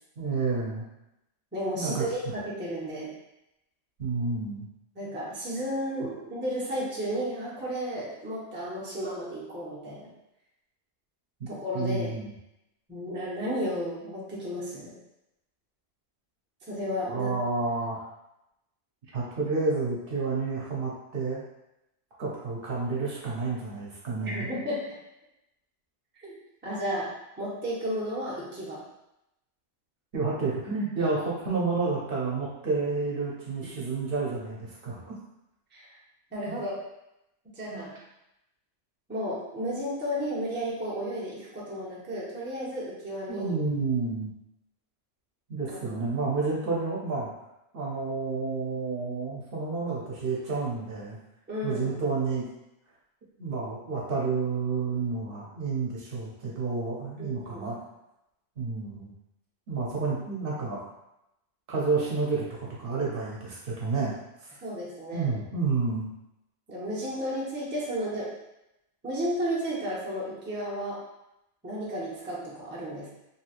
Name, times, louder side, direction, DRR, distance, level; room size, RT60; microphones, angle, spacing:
voice 1, 0.2-0.8 1.7-2.3 4.0-4.7 11.4-11.5 11.7-12.3 17.1-18.1 19.1-21.4 22.2-24.5 30.1-35.2 36.5-36.6 37.7-37.8 43.3-44.3 45.5-47.3 47.7-51.2 51.6-52.4 53.4-57.8 58.6-59.1 59.7-60.9 61.7-64.2 65.1-66.1, right 4 dB, 60° right, -5 dB, 0.8 m, -30 dB
voice 2, 1.5-3.1 5.0-10.1 11.5-12.1 12.9-14.9 16.7-17.4 24.2-25.0 26.2-26.3 26.6-27.1 27.4-28.8 33.6-33.7 35.7-36.0 36.3-36.8 37.5-37.9 39.1-43.5 45.7-46.0 51.5-52.0 57.2-57.8 64.6-65.4 66.7-68.3 69.0-71.0 71.6-73.1, equal, 10° right, -7 dB, 0.6 m, -33 dB
3.0 x 2.8 x 2.4 m, 0.88 s
omnidirectional pair, 1.1 m